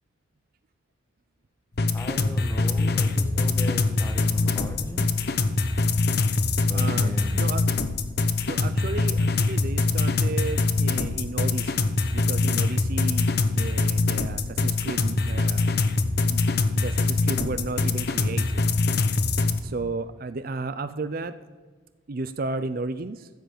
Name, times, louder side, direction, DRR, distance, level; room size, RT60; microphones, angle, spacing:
sound 1, 1.8-19.6, left 3 dB, 50° left, 0.9 m, -24 dB
voice 1, 1.9-5.2 6.6-7.5, equal, 15° left, 5 dB, 1.5 m, -38 dB
voice 2, 6.7-7.6 8.5-15.7 16.2-16.5 16.7-18.6 19.6-21.4 22.1-23.3, right 3 dB, 45° right, 12 dB, 0.5 m, -33 dB
14.5 x 7.9 x 6.6 m, 1.4 s
head